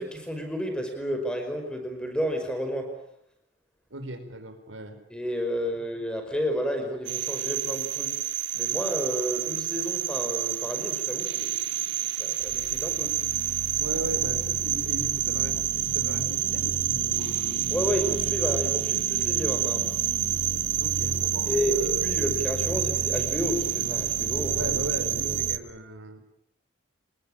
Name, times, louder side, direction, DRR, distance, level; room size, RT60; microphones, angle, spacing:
voice 1, 0.0-3.0 5.1-8.2 8.5-11.9 12.2-13.1 17.7-20.0 21.5-24.8 25.1-25.4, equal, 5° left, 5 dB, 5.2 m, -31 dB
voice 2, 3.9-5.0 13.8-17.7 20.8-22.1 24.5-26.2, right 1 dB, 90° right, 8 dB, 4.7 m, -37 dB
sound 1, 7.0-25.6, right 10 dB, 70° right, 1.3 m, -28 dB
28.0 x 20.5 x 8.9 m, 0.76 s
head